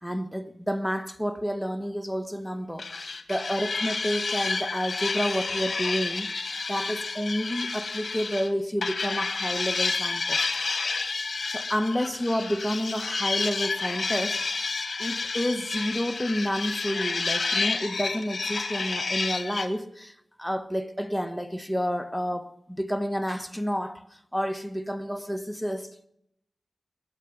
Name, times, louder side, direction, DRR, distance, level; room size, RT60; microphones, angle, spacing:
voice 1, 0.0-10.6 11.5-14.7 15.0-26.0, equal, ahead, 1.3 m, -30 dB
sound 1, 2.8-8.5 8.8-19.7, left 4 dB, 60° left, 1.6 m, -30 dB
21.5 x 9.2 x 7.4 m
cardioid pair, 50°, 0 cm